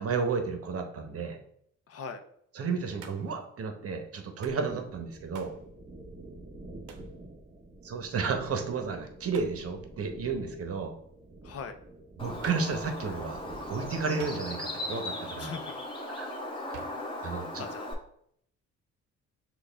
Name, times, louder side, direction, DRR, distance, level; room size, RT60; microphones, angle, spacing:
voice 1, 0.0-1.4 2.5-5.5 7.8-10.9 12.2-13.4 13.7-15.5 16.1-16.3 16.7-16.8 17.2-17.6, right 5 dB, 50° right, 5 dB, 0.9 m, -32 dB
voice 2, 1.9-2.2 11.4-11.8 15.4-15.7 16.1-16.3 17.6-17.9, left 5 dB, 55° left, 8 dB, 0.6 m, -40 dB
Hands, 3.0-3.4 4.4-4.7 5.3-5.6 6.9-7.1 9.3-9.6 12.4-12.8 14.2-14.8 16.7-17.1, right 6 dB, 75° right, 0.7 m, -48 dB
sound 1, 4.5-14.1, right 2 dB, 20° right, 0.8 m, -48 dB
Bird, 12.2-17.9, left 1 dB, 15° left, 1.1 m, -38 dB
6.3 x 2.4 x 3.4 m, 0.69 s
cardioid pair, 90°, 30 cm